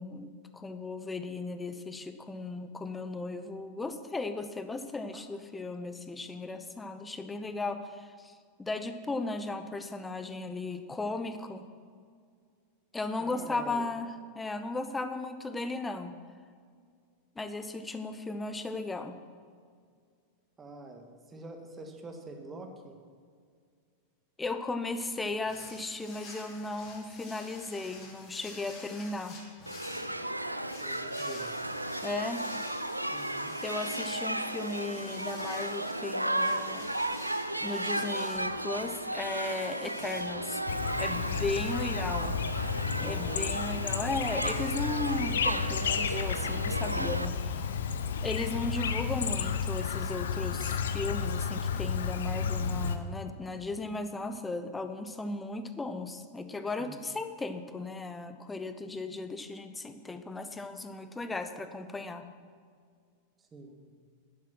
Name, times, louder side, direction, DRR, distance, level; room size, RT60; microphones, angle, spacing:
voice 1, 0.0-11.7 12.9-16.1 17.4-19.2 24.4-29.4 32.0-32.4 33.6-36.9 37.6-40.6 41.0-42.4 42.7-47.7 48.2-62.3, left 3 dB, 10° left, 9 dB, 0.9 m, -36 dB
voice 2, 13.2-13.9 20.6-23.0 30.8-31.5 33.1-33.5 42.9-43.5 56.8-57.0 63.4-63.9, right 2 dB, 20° right, 4 dB, 1.7 m, -46 dB
sound 1, 25.5-42.8, left 3 dB, 35° left, 3.2 m, -51 dB
Shout / Human group actions, 29.7-47.3, right 1 dB, 85° right, 0.5 m, -34 dB
Chirp tweet, 40.7-53.0, left 6 dB, 65° left, 0.7 m, -32 dB
11.0 x 10.0 x 6.2 m, 2.1 s
figure-of-eight pair, 90°, 0 cm